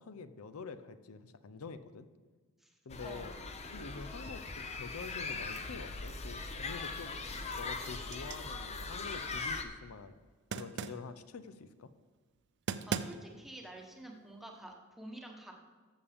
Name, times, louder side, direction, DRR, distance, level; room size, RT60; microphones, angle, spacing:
voice 1, 0.0-2.1 2.9-3.3 3.7-10.2 10.5-11.9, left 5 dB, 75° left, 13 dB, 0.6 m, -47 dB
sound 1, 2.9-9.6, left 3 dB, 30° left, 0.6 m, -40 dB
sound 2, 6.2-6.9 7.2-9.5 10.5-11.1 12.3-12.4 12.7-13.5, right 6 dB, 55° right, 0.4 m, -41 dB
voice 2, 12.9-15.5, right 1 dB, ahead, 1 dB, 1.1 m, -49 dB
13.5 x 7.2 x 3.5 m, 1.4 s
head